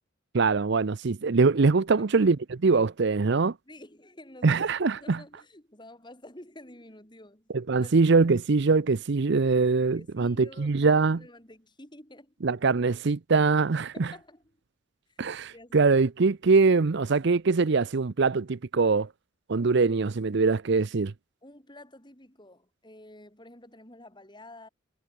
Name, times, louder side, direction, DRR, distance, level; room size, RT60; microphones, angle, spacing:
voice 1, 0.3-3.5 4.4-5.2 7.7-11.2 12.4-14.1 15.2-19.1 19.5-21.1, right 4 dB, 55° right, 0.6 m, -23 dB
voice 2, 3.6-7.5 7.8-8.3 9.8-12.3 13.9-14.6 15.1-16.0 21.4-24.7, left 1 dB, 20° left, 6.4 m, -50 dB
head